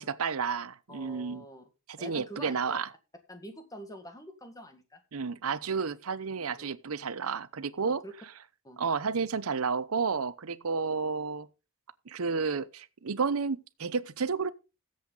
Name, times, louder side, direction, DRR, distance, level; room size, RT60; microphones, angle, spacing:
voice 1, 0.0-1.4 1.9-2.9 5.1-8.0 8.8-11.5 12.1-14.5, right 5 dB, 90° right, 0.7 m, -31 dB
voice 2, 0.9-1.6 2.0-2.8 3.3-5.0 6.6-6.7 7.9-8.1 8.6-8.8, equal, 15° left, 1.9 m, -46 dB
14.0 x 7.9 x 3.9 m
head